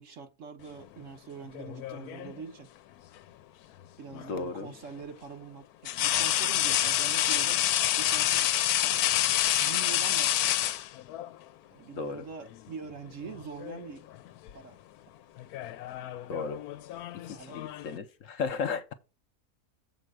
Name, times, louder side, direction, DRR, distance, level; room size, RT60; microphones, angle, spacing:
voice 1, 0.0-2.7 4.0-7.7 8.0-8.5 9.6-10.6 11.7-14.1 14.5-14.8 17.3-17.7, right 6 dB, 60° right, 1.3 m, -44 dB
sound 1, 1.5-2.4 4.2-4.3 5.8-11.3 12.5-12.7 13.1-13.9 14.1-14.5 15.4-18.0, left 12 dB, 90° left, 1.1 m, -28 dB
voice 2, 4.1-4.7 11.9-12.2 16.3-16.6 17.2-18.9, left 5 dB, 65° left, 1.2 m, -35 dB
7.5 x 4.4 x 6.5 m
omnidirectional pair, 1.5 m